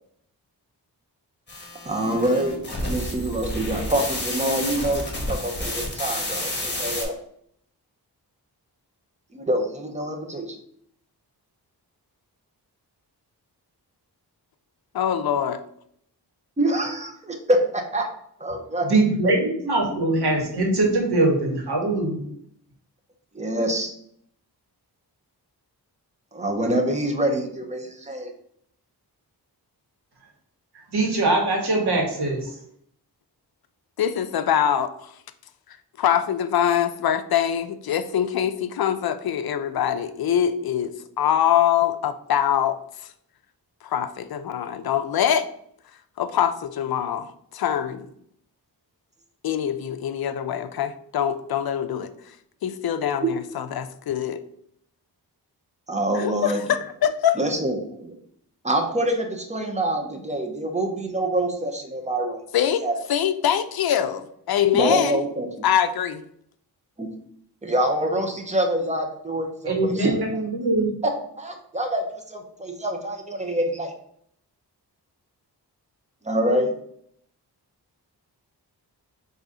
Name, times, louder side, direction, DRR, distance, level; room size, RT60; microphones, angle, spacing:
sound 1, 1.5-7.0, left 1 dB, 25° left, 1.3 m, -30 dB
voice 1, 1.8-7.2 9.3-10.6 16.6-18.1 18.4-18.9 23.3-23.9 26.3-28.3 53.2-53.3 55.9-56.6 57.4-58.1 58.6-62.4 62.8-62.9 64.7-65.5 67.0-67.1 67.6-70.1 71.4-73.9 76.2-76.7, right 1 dB, 15° right, 3 dB, 0.8 m, -25 dB
voice 2, 14.9-15.6 34.0-35.1 36.0-42.8 43.8-45.5 46.2-48.1 49.4-52.4 52.6-54.4 56.1-57.4 62.5-62.8 63.1-65.2 65.6-66.2, left 9 dB, 65° left, 10 dB, 0.5 m, -24 dB
voice 3, 18.8-22.2 30.7-32.6 69.6-70.9, right 2 dB, 70° right, 0 dB, 1.5 m, -22 dB
3.8 x 2.8 x 4.8 m, 0.69 s
wide cardioid pair, 105°, 40 cm